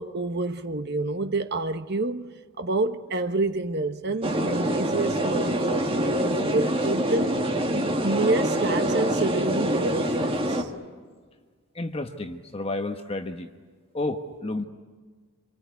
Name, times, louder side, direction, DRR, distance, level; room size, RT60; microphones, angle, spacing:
voice 1, 0.0-7.4 8.0-10.7, right 2 dB, 50° right, 1.1 m, -28 dB
sound 1, 4.2-10.6, right 1 dB, 25° right, 1.9 m, -25 dB
voice 2, 11.7-13.5 13.9-14.6, left 2 dB, 25° left, 1.1 m, -31 dB
26.0 x 23.5 x 9.5 m
head